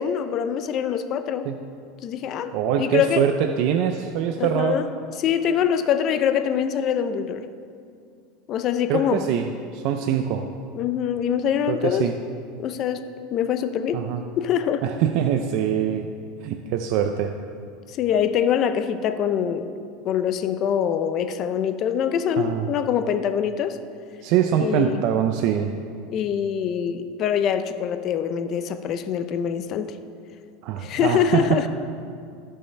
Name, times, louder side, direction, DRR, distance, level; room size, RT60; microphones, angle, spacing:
voice 1, 0.0-1.5 2.0-2.5 2.8-3.2 4.4-4.9 5.2-7.5 8.5-9.2 10.7-12.1 12.6-13.0 13.3-14.0 14.4-14.8 17.9-19.7 20.0-23.8 24.6-25.0 26.1-30.0 30.8-31.7, left 8 dB, 40° left, 10 dB, 0.5 m, -24 dB
voice 2, 2.5-4.8 8.9-10.5 11.7-12.2 13.9-14.2 14.8-16.1 16.4-17.3 22.4-22.7 24.2-25.7 30.6-31.6, right 9 dB, 55° right, 6 dB, 0.4 m, -23 dB
15.0 x 5.5 x 3.3 m, 2.3 s
supercardioid pair, 140°, 0 cm